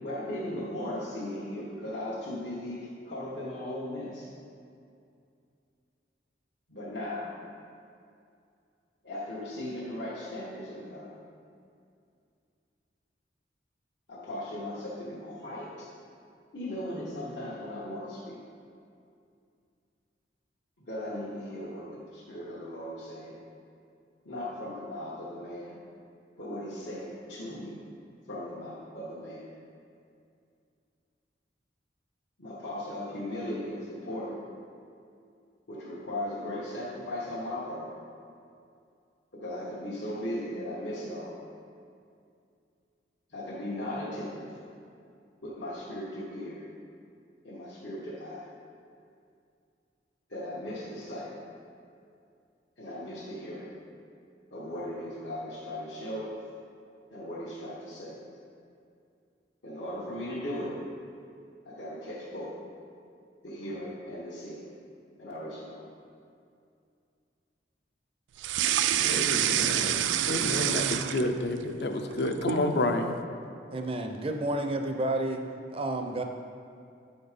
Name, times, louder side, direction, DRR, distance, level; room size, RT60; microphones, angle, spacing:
voice 1, 0.0-4.3 6.7-7.3 9.0-11.1 14.1-15.9 16.5-18.4 20.9-23.4 24.2-25.8 26.4-27.8 28.3-29.5 32.4-34.4 35.7-37.9 39.3-41.4 43.3-44.5 45.4-46.7 47.4-48.5 50.3-51.4 52.8-53.7 54.5-56.3 57.1-58.2 59.6-60.8 61.6-62.6 63.4-64.7 65.2-65.8, left 1 dB, 85° left, -8 dB, 1.2 m, -37 dB
sound 1, 68.4-71.6 72.0-72.7, right 11 dB, 85° right, 0.3 m, -27 dB
voice 2, 69.0-73.2, left 2 dB, 65° left, 5 dB, 0.6 m, -30 dB
voice 3, 73.7-75.4 75.7-76.2, right 1 dB, 30° right, 5 dB, 0.5 m, -30 dB
8.4 x 4.3 x 5.0 m, 2.4 s
head